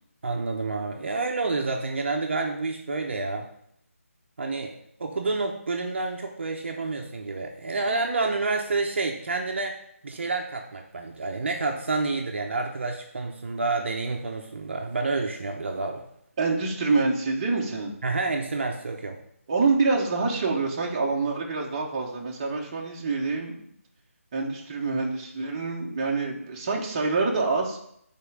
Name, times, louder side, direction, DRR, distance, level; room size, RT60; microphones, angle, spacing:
voice 1, 0.2-3.5 4.4-4.7 5.0-9.8 10.0-16.0 18.0-19.2, right 3 dB, 50° right, 2 dB, 0.9 m, -29 dB
voice 2, 16.4-17.9 19.5-23.6 24.3-27.8, right 3 dB, 25° right, -2 dB, 1.1 m, -26 dB
5.5 x 4.5 x 6.3 m, 0.71 s
figure-of-eight pair, 170°, 8 cm